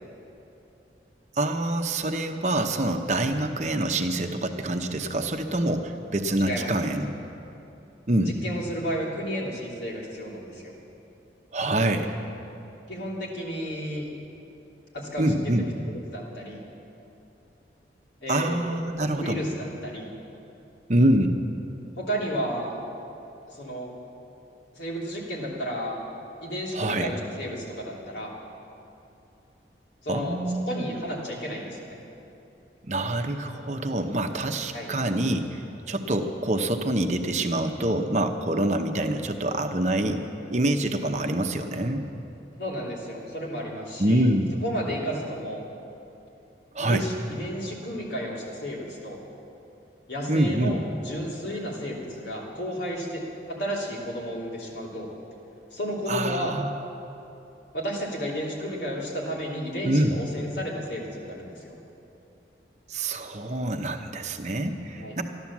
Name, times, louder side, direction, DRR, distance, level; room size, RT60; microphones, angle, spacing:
voice 1, 1.4-7.1 8.1-8.3 11.5-12.1 15.2-15.7 18.3-19.4 20.9-21.3 26.7-27.1 30.1-30.8 32.8-40.2 40.5-42.0 44.0-44.6 46.7-47.1 50.3-50.8 56.1-56.7 59.8-60.1 62.9-65.2, right 1 dB, 40° right, 6 dB, 0.8 m, -26 dB
voice 2, 8.2-10.7 12.9-14.1 14.9-16.6 18.2-18.6 19.2-20.1 22.0-22.7 23.5-23.9 24.7-26.0 26.4-28.3 30.0-30.4 30.7-32.0 34.7-34.9 42.6-44.3 44.6-45.6 46.8-49.2 50.1-53.2 53.5-55.1 55.7-56.5 57.7-61.7 65.0-65.2, equal, 85° left, -4 dB, 3.2 m, -32 dB
14.0 x 11.5 x 7.3 m, 2.8 s
head